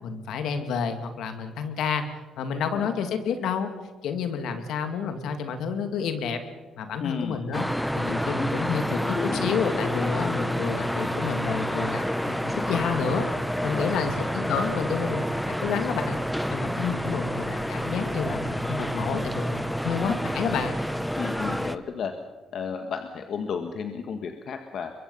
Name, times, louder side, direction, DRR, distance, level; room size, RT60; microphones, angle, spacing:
voice 1, 0.0-2.0 2.4-3.7 4.0-6.4 6.8-7.6 7.9-13.3 13.6-16.2 16.5-20.7, left 6 dB, 80° left, 7 dB, 2.3 m, -29 dB
voice 2, 7.0-7.4 13.6-14.0 21.1-22.1 22.5-24.9, left 6 dB, 65° left, 6 dB, 1.5 m, -33 dB
sound 1, 7.5-21.8, equal, 5° left, 0.9 m, -29 dB
sound 2, 8.7-18.0 18.3-18.4, left 3 dB, 45° left, 3.7 m, -39 dB
23.0 x 22.5 x 5.6 m, 1.3 s
cardioid pair, 90°, 0 cm